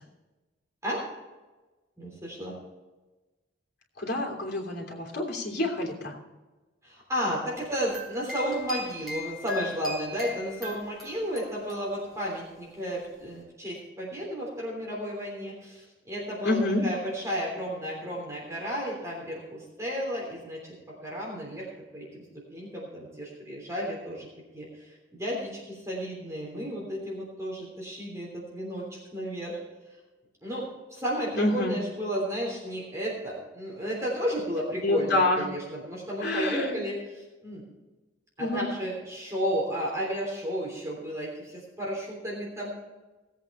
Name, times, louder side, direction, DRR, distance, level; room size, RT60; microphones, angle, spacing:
voice 1, 2.0-2.5 6.8-22.2 22.5-24.3 24.5-29.6 30.4-37.6 38.4-42.8, equal, 15° right, -4 dB, 3.3 m, -33 dB
voice 2, 4.0-6.1 16.4-16.8 31.3-31.8 34.8-35.4 36.2-36.8 38.4-38.6, left 2 dB, 60° left, 0 dB, 3.1 m, -27 dB
sound 1, 7.5-12.4, left 1 dB, ahead, 5.1 m, -40 dB
18.0 x 8.3 x 4.3 m, 1.2 s
head